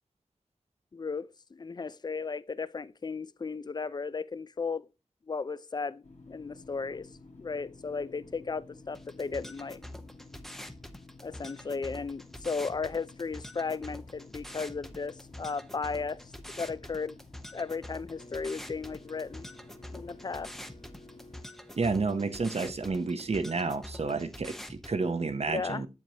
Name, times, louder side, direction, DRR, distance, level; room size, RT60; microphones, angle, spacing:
voice 1, 0.9-4.9 5.3-7.1 7.4-9.8 11.2-16.2 16.6-17.2 17.5-19.5 19.9-20.5 25.5-25.8, left 4 dB, 35° left, 0.3 m, -35 dB
sound 1, 6.0-21.4, left 3 dB, 85° left, 1.6 m, -53 dB
sound 2, 8.9-24.9, left 1 dB, 5° left, 0.6 m, -46 dB
sound 3, 18.1-23.9, left 1 dB, 65° left, 2.6 m, -55 dB
voice 2, 21.8-25.9, right 4 dB, 60° right, 0.7 m, -30 dB
7.5 x 7.2 x 2.8 m
wide cardioid pair, 60°, 12 cm